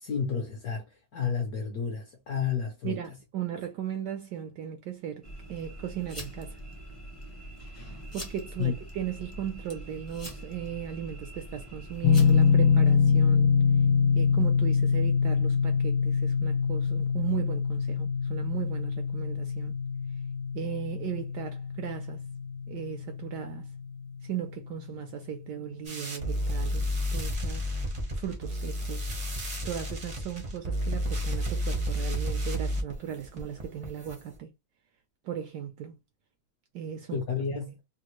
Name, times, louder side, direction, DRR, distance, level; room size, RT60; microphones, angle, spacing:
voice 1, 0.0-0.9 1.1-3.0 8.6-8.7 37.1-37.8, left 6 dB, 65° left, 1.0 m, -31 dB
voice 2, 2.8-5.2 5.5-6.6 8.1-13.5 14.1-19.7 20.5-22.2 22.7-23.7 24.2-27.6 28.1-29.1 29.6-34.5 35.2-36.0 36.7-37.2, right 9 dB, 75° right, 1.0 m, -37 dB
sound 1, 5.2-13.0, equal, 15° left, 0.6 m, -43 dB
sound 2, 12.0-25.0, left 6 dB, 80° left, 1.3 m, -25 dB
sound 3, 25.8-34.4, equal, 40° right, 0.5 m, -31 dB
3.4 x 2.3 x 2.9 m
omnidirectional pair, 2.2 m